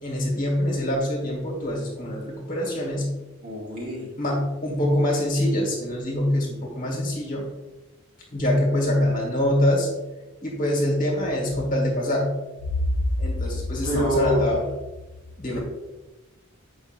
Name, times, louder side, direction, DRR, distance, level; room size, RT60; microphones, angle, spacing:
voice 1, 0.0-3.1 4.2-7.5 8.3-9.9 10.4-12.3 13.2-14.7 15.4-15.6, left 1 dB, 40° left, -2 dB, 1.6 m, -24 dB
voice 2, 3.4-4.1 12.8-12.9 13.8-14.6 15.5-15.6, equal, 45° right, -6 dB, 2.2 m, -25 dB
8.0 x 5.1 x 2.6 m, 1.1 s
head